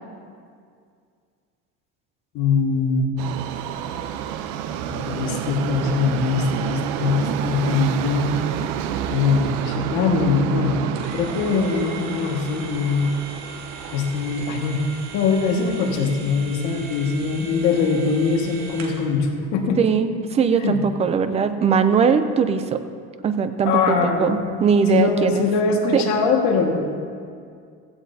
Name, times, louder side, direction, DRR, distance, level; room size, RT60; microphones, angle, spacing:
voice 1, 2.3-3.1 4.9-8.3 9.1-10.8 11.1-13.1 13.9-14.8 15.1-19.8 20.6-20.8 23.6-24.6 24.9-26.7, left 4 dB, 60° left, 1 dB, 1.8 m, -22 dB
Subway metro underground, 3.2-17.3 17.6-17.7 18.5-18.6 18.9-19.0 19.6-19.7, right 10 dB, 75° right, 0.7 m, -30 dB
sound 1, 10.9-19.1, right 4 dB, 55° right, 2.2 m, -40 dB
voice 2, 19.8-22.8 23.2-25.5 25.9-26.0, right 6 dB, 20° right, 10 dB, 0.4 m, -20 dB
16.0 x 15.5 x 2.8 m, 2.2 s
cardioid pair, 170°, 33 cm